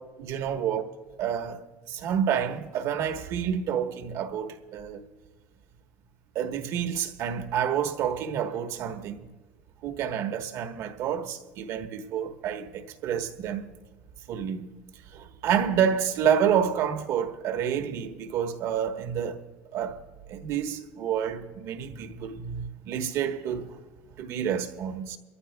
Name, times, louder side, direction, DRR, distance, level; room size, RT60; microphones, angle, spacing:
voice 1, 0.2-0.9 1.2-1.6 1.9-5.0 6.3-9.2 9.8-13.7 14.3-14.6 14.9-19.4 19.7-20.0 20.3-23.8 24.1-25.2, right 8 dB, 60° right, 1.2 m, -29 dB
24.0 x 14.5 x 2.3 m
supercardioid pair, 105°, 6 cm